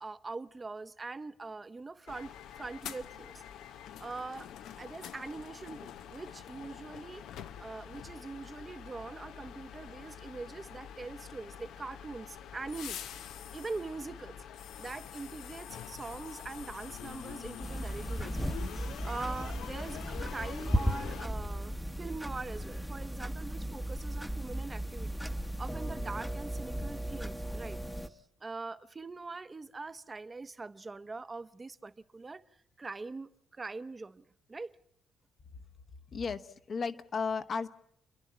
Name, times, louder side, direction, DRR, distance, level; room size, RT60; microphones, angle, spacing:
voice 1, 0.0-3.4 4.0-4.5 4.8-7.2 7.6-13.0 13.5-14.4 14.8-18.6 19.0-25.2 25.6-32.4 32.8-34.7, right 3 dB, 25° right, 0.8 m, -43 dB
sound 1, 2.1-21.3, left 9 dB, 80° left, 0.7 m, -46 dB
sound 2, 17.6-28.1, equal, 5° left, 0.9 m, -36 dB
voice 2, 36.1-37.7, left 5 dB, 50° left, 1.0 m, -34 dB
30.0 x 11.0 x 8.6 m
cardioid pair, 90°, 0 cm